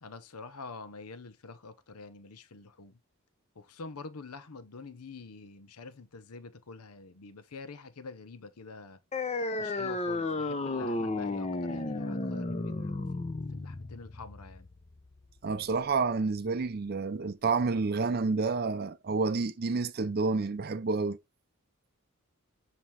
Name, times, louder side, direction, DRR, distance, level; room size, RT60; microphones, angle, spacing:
voice 1, 0.0-3.0 3.5-9.0 9.6-14.7, left 4 dB, 90° left, 0.8 m, -46 dB
sound 1, 9.1-16.1, left 2 dB, 30° left, 0.6 m, -33 dB
voice 2, 15.4-21.2, right 4 dB, 45° right, 0.4 m, -29 dB
7.4 x 2.9 x 4.7 m
head